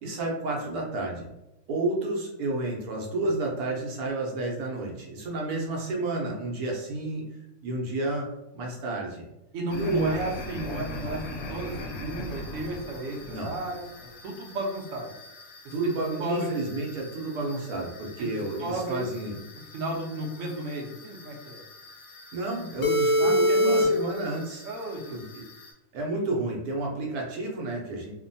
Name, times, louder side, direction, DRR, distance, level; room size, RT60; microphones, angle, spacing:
voice 1, 0.0-1.3 1.7-7.2 7.6-8.3 8.5-9.2 9.7-10.1 13.3-13.5 15.7-19.4 22.3-24.6 25.1-25.4 25.9-28.1, right 2 dB, 80° right, -1 dB, 1.1 m, -30 dB
voice 2, 9.5-13.8 14.2-15.1 16.2-16.5 18.2-18.3 18.6-19.0 19.7-21.6 23.2-23.9 24.6-25.2, right 1 dB, 60° right, -1 dB, 0.9 m, -33 dB
sound 1, 9.7-25.7, left 1 dB, 75° left, 1.0 m, -31 dB
3.0 x 2.1 x 2.6 m, 0.93 s
omnidirectional pair, 1.6 m